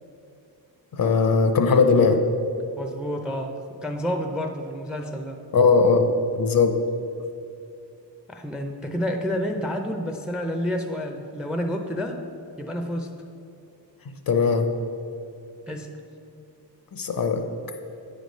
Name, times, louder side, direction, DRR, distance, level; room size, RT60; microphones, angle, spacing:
voice 1, 0.9-2.2 5.5-6.8 14.3-14.7 16.9-17.5, left 4 dB, 50° left, 6 dB, 0.6 m, -19 dB
voice 2, 2.8-3.6 3.8-5.4 8.3-12.2 12.6-13.1 15.7-15.9, equal, ahead, 4 dB, 0.4 m, -29 dB
8.7 x 3.3 x 5.3 m, 2.6 s
cardioid pair, 80°, 45 cm